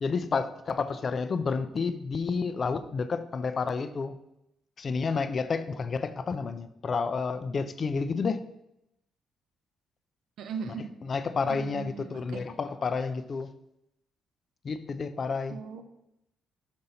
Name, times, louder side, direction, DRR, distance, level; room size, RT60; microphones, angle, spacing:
voice 1, 0.0-4.2 4.8-8.4 10.7-13.5 14.6-15.6, left 4 dB, 45° left, 0.5 m, -30 dB
voice 2, 10.4-10.9 11.6-12.4 15.5-15.8, right 6 dB, 80° right, 0.6 m, -38 dB
5.6 x 5.4 x 4.0 m
cardioid pair, 90°, 0 cm